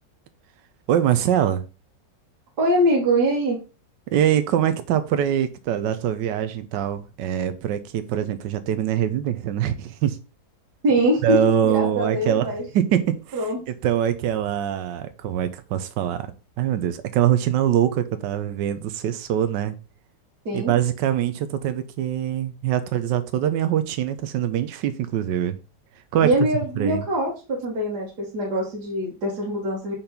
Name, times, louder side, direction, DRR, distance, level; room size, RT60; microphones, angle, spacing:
voice 1, 0.9-1.6 4.1-10.2 11.2-12.5 12.7-13.4 13.7-16.3 16.6-19.8 20.5-25.6 26.1-26.3 26.8-27.0, right 10 dB, 85° right, 1.3 m, -23 dB
voice 2, 2.6-3.6 10.8-12.6 13.3-13.6 20.5-20.7 26.2-29.9, right 1 dB, 60° right, 2.1 m, -23 dB
5.7 x 4.4 x 5.2 m
omnidirectional pair, 1.9 m